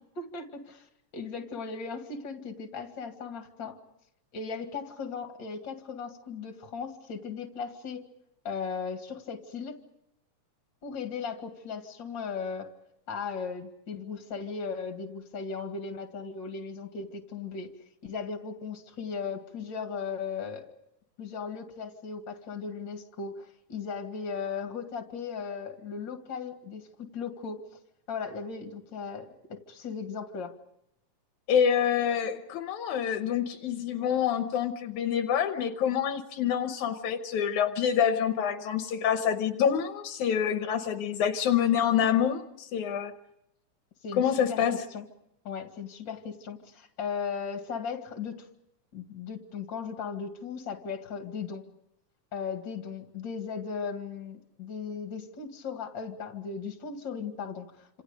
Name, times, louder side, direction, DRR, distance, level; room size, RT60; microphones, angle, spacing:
voice 1, 0.2-0.9 1.1-3.8 4.3-8.0 8.4-9.8 10.8-12.7 13.1-17.7 18.0-20.7 21.2-27.6 28.1-30.5 44.0-45.1 45.4-48.5 48.9-51.6 52.3-58.0, left 5 dB, 40° left, 5 dB, 2.6 m, -37 dB
voice 2, 31.5-43.1 44.1-44.8, left 8 dB, 80° left, 8 dB, 2.4 m, -27 dB
29.0 x 27.0 x 5.2 m, 0.83 s
omnidirectional pair, 3.5 m